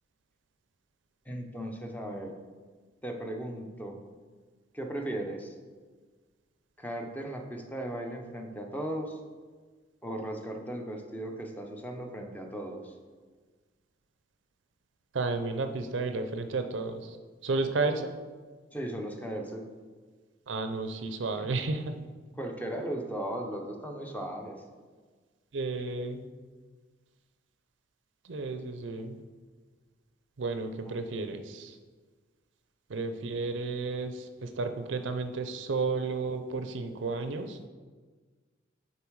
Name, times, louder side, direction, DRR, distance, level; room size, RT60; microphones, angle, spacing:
voice 1, 1.3-2.3 3.0-4.0 4.7-5.5 6.8-9.2 10.0-12.9 18.7-19.7 21.4-21.5 22.3-24.6 30.8-30.9, right 1 dB, 10° left, 3 dB, 0.6 m, -37 dB
voice 2, 15.1-17.0 17.4-18.1 20.5-22.0 25.5-26.2 28.3-29.2 30.4-31.7 32.9-37.6, right 3 dB, 75° right, 8 dB, 0.5 m, -32 dB
7.0 x 4.4 x 4.7 m, 1.4 s
head